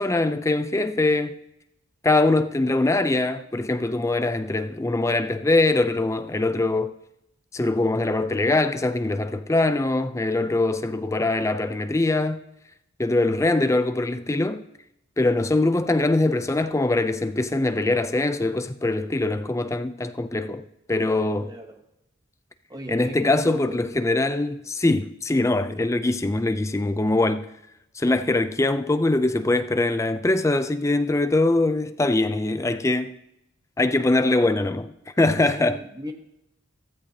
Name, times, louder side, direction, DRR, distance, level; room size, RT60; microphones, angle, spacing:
voice 1, 0.0-1.4 2.0-6.9 7.5-12.4 13.0-14.6 15.2-21.5 22.9-27.5 28.0-33.2 33.8-35.8, left 2 dB, 15° left, 0.4 m, -22 dB
voice 2, 21.4-21.8 22.7-24.1 35.5-36.1, equal, 20° right, 1.0 m, -37 dB
15.0 x 13.0 x 2.8 m
head